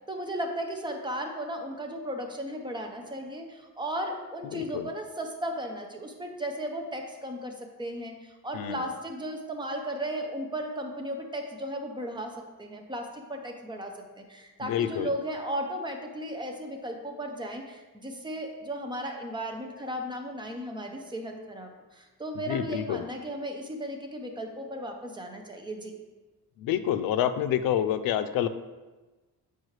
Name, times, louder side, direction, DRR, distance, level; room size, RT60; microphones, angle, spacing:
voice 1, 0.1-25.9, right 1 dB, 15° right, 2 dB, 0.6 m, -35 dB
voice 2, 4.5-4.9 8.5-8.9 14.6-15.1 22.5-23.0 26.6-28.5, left 10 dB, 90° left, 11 dB, 0.5 m, -28 dB
7.9 x 4.7 x 3.2 m, 1.2 s
wide cardioid pair, 170°, 33 cm